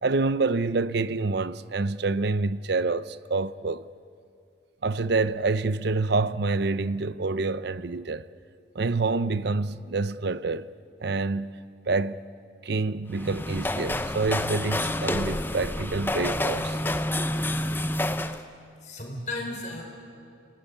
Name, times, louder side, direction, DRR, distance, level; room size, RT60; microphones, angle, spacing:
voice 1, 0.0-3.8 4.8-8.2 8.7-10.7 11.0-12.3 12.6-16.8, right 3 dB, 55° right, 0.7 m, -27 dB
sound 1, 13.1-18.4, left 1 dB, 10° left, 0.7 m, -28 dB
voice 2, 18.2-19.8, left 2 dB, 40° left, 4.8 m, -36 dB
28.5 x 18.0 x 9.9 m
head